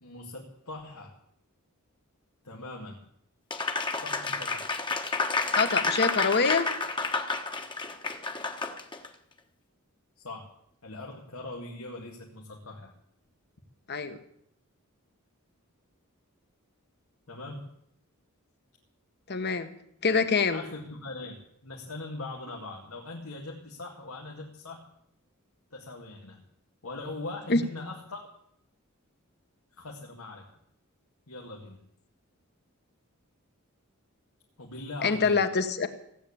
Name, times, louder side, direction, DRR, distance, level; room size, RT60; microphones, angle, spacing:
voice 1, 0.0-1.1 2.4-3.0 4.0-4.7 10.2-10.5 10.8-12.9 17.3-17.7 20.5-21.4 21.6-24.9 25.7-26.4 26.8-28.3 29.8-30.5 31.3-31.8 34.6-35.4, left 2 dB, 85° left, -1 dB, 2.1 m, -41 dB
Applause, 3.5-9.1, left 3 dB, 20° left, 1.3 m, -30 dB
voice 2, 5.5-6.7 13.9-14.2 19.3-19.7 20.0-20.6 27.5-27.6 35.0-35.9, left 4 dB, 50° left, 9 dB, 1.4 m, -25 dB
16.5 x 8.5 x 8.6 m, 0.74 s
head